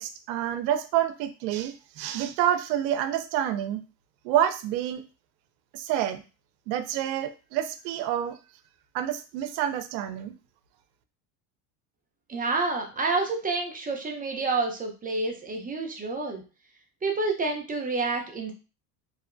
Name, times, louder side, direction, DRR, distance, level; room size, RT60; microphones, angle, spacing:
voice 1, 0.0-3.8 4.2-5.0 5.7-6.2 6.7-8.4 8.9-10.3, right 11 dB, 85° right, 8 dB, 0.5 m, -28 dB
voice 2, 12.3-16.4 17.0-18.5, right 3 dB, 20° right, 2 dB, 0.5 m, -28 dB
2.7 x 2.0 x 2.5 m, 0.33 s
supercardioid pair, 90°, 49 cm